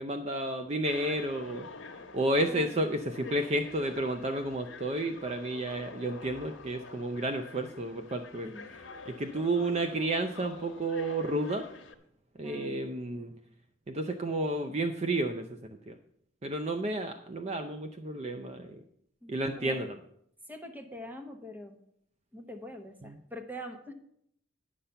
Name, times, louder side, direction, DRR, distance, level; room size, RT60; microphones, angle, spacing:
voice 1, 0.0-1.7 2.1-8.5 9.1-11.7 12.4-13.3 13.9-15.5 15.9-16.0 16.4-18.8 19.3-20.0 23.0-23.2, right 1 dB, 35° right, 7 dB, 0.5 m, -31 dB
sound 1, 0.8-11.9, left 4 dB, 75° left, 1.1 m, -47 dB
voice 2, 2.4-3.0 8.4-8.7 12.4-12.9 19.2-19.8 20.5-21.8 22.3-23.9, equal, 10° right, 5 dB, 1.0 m, -44 dB
9.9 x 5.7 x 6.7 m, 0.71 s
head